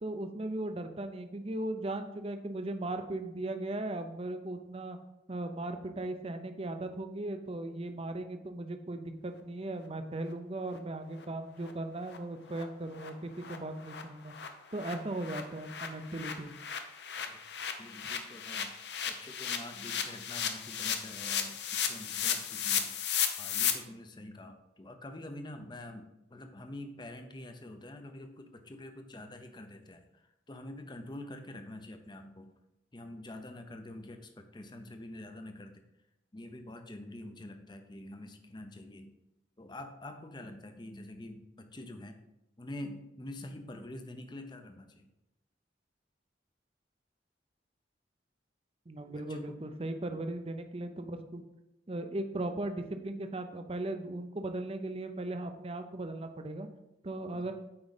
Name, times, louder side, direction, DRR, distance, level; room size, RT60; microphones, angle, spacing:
voice 1, 0.0-5.0 5.3-14.3 14.7-16.5 48.9-51.4 51.9-56.7 57.0-57.5, right 2 dB, 30° right, 7 dB, 0.6 m, -37 dB
sound 1, 10.7-10.8 11.2-11.3 11.6-11.7 12.1-12.2 12.5-12.6 12.9-13.1 13.4-13.6 13.8-23.7, left 8 dB, 65° left, 0.7 m, -35 dB
voice 2, 17.8-23.0 23.4-32.5 32.9-35.8 36.3-39.1 39.6-42.2 42.6-45.1 49.1-49.5 53.1-53.3 57.3-57.5, left 1 dB, 25° left, 6 dB, 0.7 m, -46 dB
8.7 x 4.7 x 4.1 m, 0.90 s
head